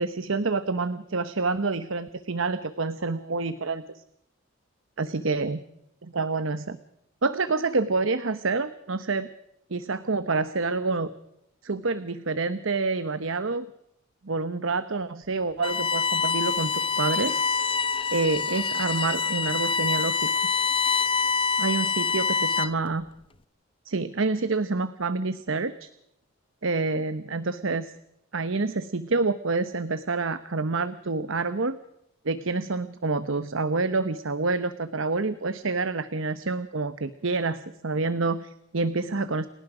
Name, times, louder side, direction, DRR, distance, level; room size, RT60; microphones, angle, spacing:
voice 1, 0.0-3.8 5.0-5.6 6.0-6.8 7.2-9.3 9.7-11.1 11.6-13.7 14.2-16.7 17.0-17.4 18.1-20.3 21.6-23.0 23.8-25.9 26.6-27.9 28.3-31.8 32.2-39.5, right 3 dB, 65° right, 13 dB, 1.0 m, -27 dB
Bowed string instrument, 15.6-22.9, left 4 dB, 25° left, 0.7 m, -26 dB
29.5 x 18.0 x 4.9 m, 0.80 s
head